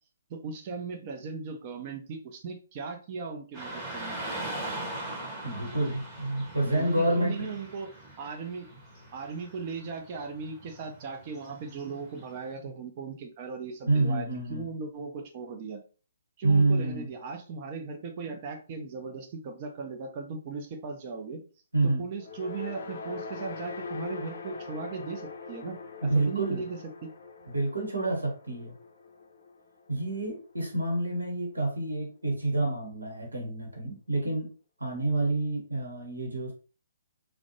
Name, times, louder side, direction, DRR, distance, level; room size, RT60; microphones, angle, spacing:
voice 1, 0.3-4.5 6.7-7.9 8.2-8.7 9.1-15.8 16.4-21.4 21.8-27.1, right 4 dB, 35° right, 3 dB, 0.5 m, -38 dB
Car passing by / Traffic noise roadway noise, 3.5-12.6, right 1 dB, 15° right, 0.8 m, -41 dB
voice 2, 5.4-7.5 13.9-14.6 16.4-17.1 21.7-22.0 26.0-26.6 27.5-28.7 29.9-34.5 34.8-36.5, right 2 dB, 80° right, 0 dB, 0.9 m, -28 dB
sound 1, 22.2-30.5, left 4 dB, 60° left, 0.4 m, -42 dB
2.5 x 2.1 x 2.6 m, 0.37 s
figure-of-eight pair, 130°, 0 cm